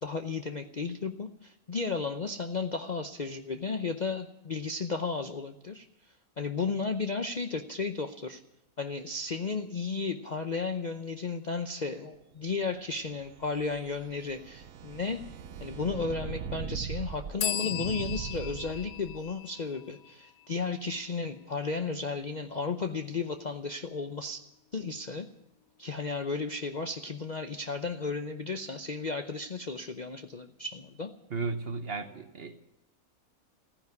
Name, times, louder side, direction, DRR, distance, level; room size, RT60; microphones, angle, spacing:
voice 1, 0.0-5.9 6.4-8.4 8.8-15.3 15.6-24.4 24.7-25.3 25.8-31.1, left 4 dB, 45° left, 6 dB, 0.6 m, -34 dB
sound 1, 12.9-19.3, right 7 dB, 70° right, 1.2 m, -40 dB
sound 2, 17.4-21.0, left 10 dB, 70° left, 1.2 m, -37 dB
voice 2, 31.3-32.6, right 4 dB, 45° right, 8 dB, 1.2 m, -34 dB
15.5 x 9.9 x 9.5 m, 0.88 s
omnidirectional pair, 1.6 m